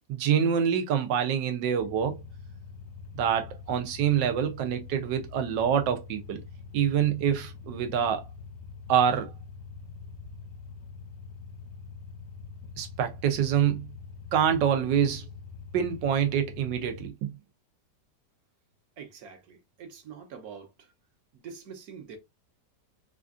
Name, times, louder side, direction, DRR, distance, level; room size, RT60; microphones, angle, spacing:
voice 1, 0.1-2.2 3.1-6.4 6.7-8.2 8.9-9.3 12.8-13.9 14.3-15.2 15.7-17.3, right 8 dB, 85° right, 1.4 m, -26 dB
sound 1, 1.8-17.1, left 5 dB, 75° left, 1.1 m, -44 dB
voice 2, 19.0-20.9 21.3-22.2, right 6 dB, 60° right, 1.3 m, -45 dB
4.4 x 2.5 x 2.4 m
omnidirectional pair, 1.9 m